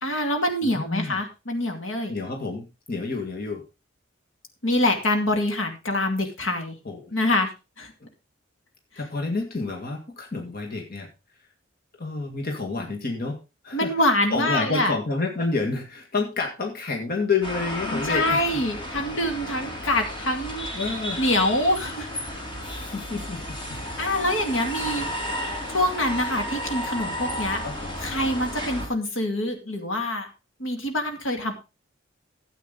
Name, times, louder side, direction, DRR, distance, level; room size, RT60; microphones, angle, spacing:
voice 1, 0.0-2.1 4.6-6.8 7.1-7.5 7.8-7.9 13.7-14.9 17.9-20.8 21.2-22.1 24.0-25.3 25.7-27.6 28.0-30.3 30.6-31.5, left 1 dB, 75° left, 4 dB, 2.4 m, -25 dB
voice 2, 0.6-1.2 2.1-3.6 6.8-7.1 8.0-8.1 9.0-11.1 11.9-13.4 13.6-18.6 20.7-21.2 22.6-23.4 23.7-23.8 27.6-27.9, left 3 dB, 50° left, 2 dB, 2.0 m, -29 dB
sound 1, 17.4-28.9, equal, 25° left, 3.1 m, -33 dB
13.0 x 8.3 x 3.9 m, 0.29 s
head